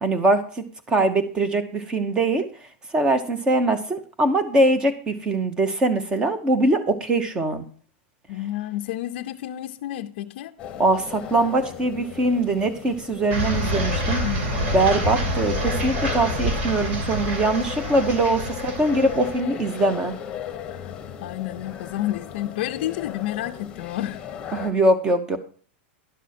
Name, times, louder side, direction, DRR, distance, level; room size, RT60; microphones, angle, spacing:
voice 1, 0.0-2.5 2.9-7.7 10.8-14.2 14.7-20.1 24.5-25.4, right 2 dB, 10° right, 0.8 m, -22 dB
voice 2, 8.3-10.5 14.1-14.5 16.7-16.8 20.7-24.2, left 14 dB, 50° left, 0.5 m, -30 dB
sound 1, 10.6-24.7, left 9 dB, 15° left, 1.1 m, -36 dB
sound 2, 13.3-19.4, equal, 70° right, 2.4 m, -27 dB
11.0 x 6.1 x 4.2 m
supercardioid pair, 175°, 6 cm